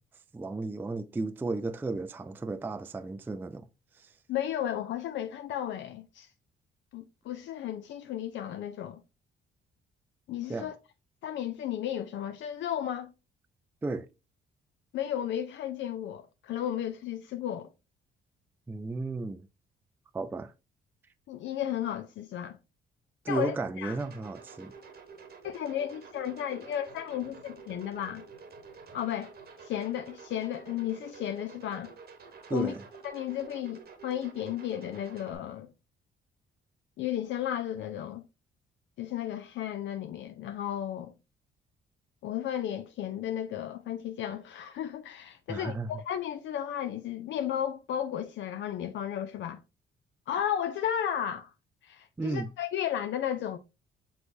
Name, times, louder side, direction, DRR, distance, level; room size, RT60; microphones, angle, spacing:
voice 1, 0.3-3.7 3.9-4.1 10.5-10.7 13.8-14.1 18.7-19.5 20.1-20.5 23.2-24.7 32.5-32.8 45.5-45.9 52.2-52.5, right 3 dB, 10° right, 0.3 m, -34 dB
voice 2, 4.3-6.3 6.9-9.0 10.3-10.7 11.2-13.1 14.9-17.7 21.3-22.6 23.3-24.0 25.4-28.2 28.9-29.3 29.6-31.9 32.5-32.7 33.0-35.7 37.0-38.2 39.0-41.1 42.2-49.6 50.3-51.5 51.8-53.6, left 10 dB, 70° left, 0.5 m, -34 dB
sound 1, 23.9-35.3, right 5 dB, 50° right, 1.0 m, -49 dB
6.1 x 3.2 x 2.6 m
cardioid pair, 90°, 20 cm